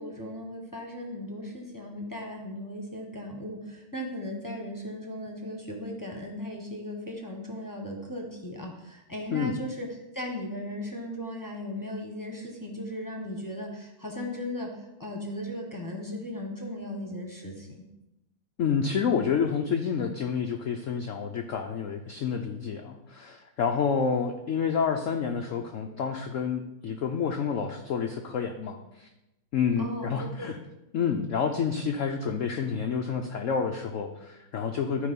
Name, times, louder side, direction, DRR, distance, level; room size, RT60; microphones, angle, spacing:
voice 1, 0.0-9.9 10.1-14.7 15.0-17.8 29.8-30.5, left 1 dB, 15° left, 1 dB, 0.9 m, -37 dB
voice 2, 18.6-29.1 29.5-30.6 30.9-35.1, left 6 dB, 70° left, 5 dB, 0.7 m, -29 dB
11.5 x 4.8 x 5.3 m, 0.95 s
omnidirectional pair, 2.1 m